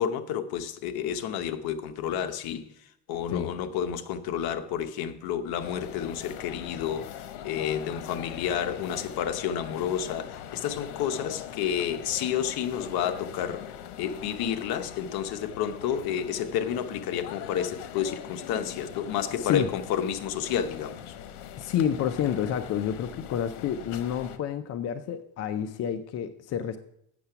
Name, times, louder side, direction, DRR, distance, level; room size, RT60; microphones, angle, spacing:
voice 1, 0.0-2.7 3.1-13.6 14.0-21.0, left 9 dB, 55° left, 0.9 m, -30 dB
sound 1, 5.6-24.4, left 10 dB, 85° left, 1.0 m, -42 dB
voice 2, 19.4-19.7 21.6-26.8, left 9 dB, 35° left, 0.5 m, -29 dB
8.4 x 6.7 x 5.8 m
cardioid pair, 130°, 44 cm